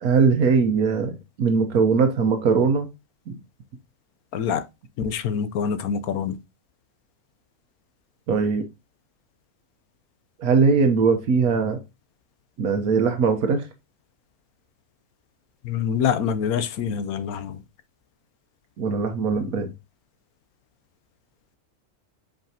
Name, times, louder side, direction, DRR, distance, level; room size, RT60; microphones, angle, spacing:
voice 1, 0.0-2.9 3.3-3.4 8.3-8.7 10.4-11.8 12.6-13.7 18.8-19.7, right 5 dB, 85° right, 1.4 m, -20 dB
voice 2, 4.3-4.6 5.0-6.4 15.6-17.6, left 7 dB, 80° left, 1.2 m, -25 dB
7.7 x 5.0 x 2.8 m
omnidirectional pair, 1.5 m